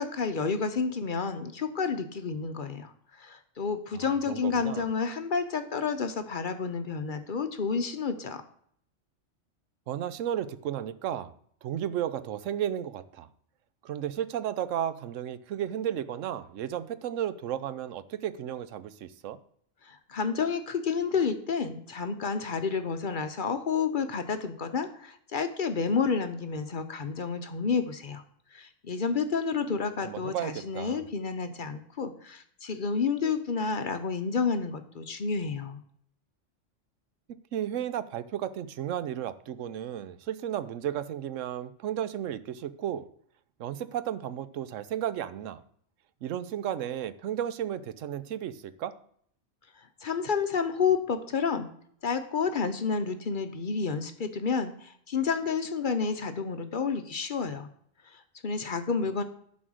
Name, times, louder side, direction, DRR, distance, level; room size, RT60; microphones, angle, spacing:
voice 1, 0.0-2.9 3.2-8.4 19.8-28.2 28.5-35.8 50.0-51.7 52.0-57.7 58.1-59.2, left 5 dB, 50° left, 9 dB, 0.7 m, -30 dB
voice 2, 3.9-4.9 9.9-11.3 11.6-13.3 13.8-19.4 30.0-31.0 37.5-43.1 43.6-45.6 46.2-48.9, right 10 dB, 85° right, 14 dB, 1.0 m, -33 dB
11.0 x 4.2 x 6.2 m, 0.63 s
omnidirectional pair, 1.3 m